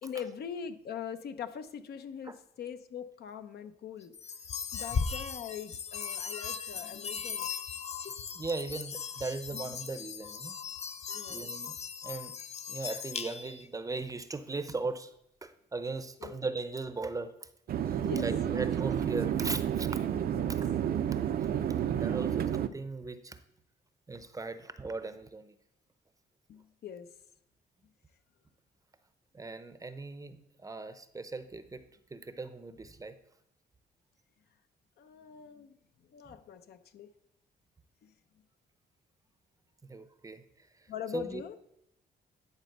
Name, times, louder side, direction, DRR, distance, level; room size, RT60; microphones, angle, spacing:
voice 1, 0.0-4.1 4.7-7.5 11.1-11.4 16.2-16.3 18.0-18.7 20.3-20.5 26.5-27.1 35.0-35.8 36.1-37.1 38.0-38.1 40.9-41.6, left 8 dB, 70° left, 9 dB, 0.7 m, -42 dB
sound 1, 4.1-13.7, left 6 dB, 40° left, 0.5 m, -38 dB
voice 2, 8.3-10.6 11.3-11.7 12.0-12.3 12.7-15.1 15.4-17.5 17.8-20.0 21.8-23.4 24.1-25.5 29.3-31.8 32.1-33.2 39.8-41.4, right 3 dB, 20° right, 11 dB, 0.6 m, -38 dB
sound 2, 17.7-22.7, right 9 dB, 60° right, 0.5 m, -30 dB
10.5 x 4.2 x 6.6 m, 0.77 s
cardioid pair, 125°, 17 cm